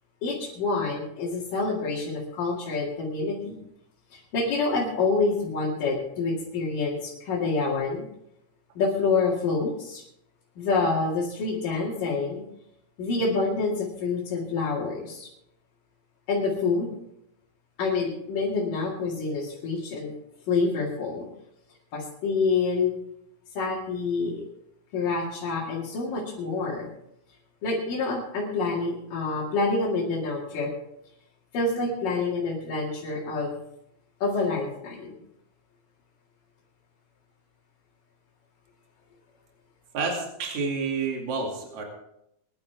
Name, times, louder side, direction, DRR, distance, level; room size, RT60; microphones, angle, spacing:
voice 1, 0.2-3.6 4.1-8.1 8.8-10.0 10.6-12.4 13.0-15.3 16.3-16.9 17.8-20.1 20.5-21.3 21.9-22.9 23.6-24.4 24.9-26.9 27.6-30.7 31.5-33.6 34.2-35.2, left 3 dB, 90° left, -5 dB, 3.9 m, -27 dB
voice 2, 39.9-41.8, right 4 dB, 60° right, 0 dB, 3.7 m, -29 dB
22.5 x 11.0 x 3.4 m, 0.78 s
omnidirectional pair, 3.8 m